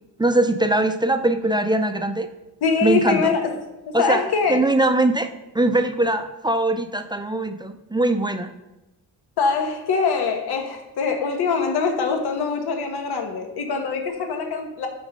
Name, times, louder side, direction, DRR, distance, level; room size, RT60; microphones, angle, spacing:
voice 1, 0.2-2.3 2.8-3.3 3.9-4.2 4.5-5.3 5.5-8.5, right 2 dB, 10° right, 7 dB, 0.5 m, -21 dB
voice 2, 2.6-3.5 3.9-4.6 9.4-14.9, left 5 dB, 85° left, 4 dB, 1.2 m, -23 dB
6.3 x 6.2 x 5.4 m, 1.0 s
cardioid pair, 105°, 38 cm